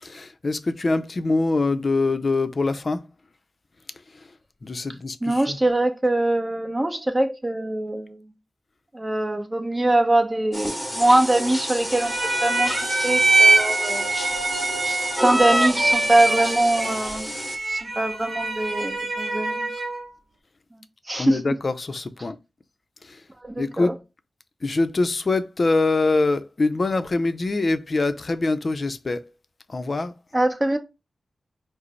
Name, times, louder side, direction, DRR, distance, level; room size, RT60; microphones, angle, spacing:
voice 1, 0.0-3.0 4.6-5.6 21.2-22.4 23.0-23.2 23.6-24.0 24.6-29.2 29.7-30.1, left 3 dB, 50° left, 0.5 m, -24 dB
voice 2, 5.2-8.2 8.9-12.1 12.4-12.7 13.0-14.1 15.2-19.7 21.1-21.5 23.4-23.9 30.3-30.8, right 1 dB, 20° right, 0.8 m, -23 dB
sound 1, 10.5-17.6, equal, ahead, 1.2 m, -31 dB
sound 2, 11.9-20.0, right 3 dB, 50° right, 1.0 m, -23 dB
4.8 x 2.0 x 3.1 m
cardioid pair, 60°, 0 cm